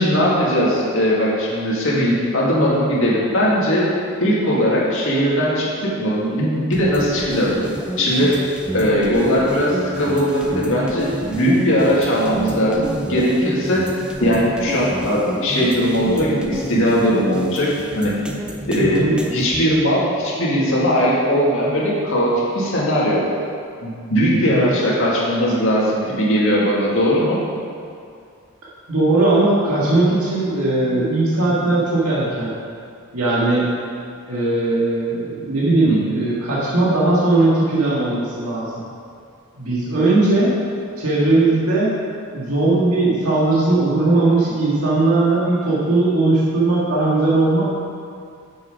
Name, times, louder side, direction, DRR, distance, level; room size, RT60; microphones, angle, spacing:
voice 1, 0.0-3.9 4.2-7.5 8.0-8.4 8.7-13.9 14.2-18.1 18.7-23.3 23.8-27.4 31.3-31.5 35.8-36.0, equal, 60° left, -5 dB, 1.9 m, -19 dB
sound 1, 6.7-19.6, equal, 5° right, 0.5 m, -29 dB
voice 2, 18.8-19.1 24.4-24.7 28.9-32.5 33.1-33.7 34.3-38.7 39.6-40.5 41.0-42.0 42.3-47.6, right 2 dB, 80° right, -7 dB, 1.7 m, -18 dB
7.3 x 6.3 x 4.9 m, 2.4 s
head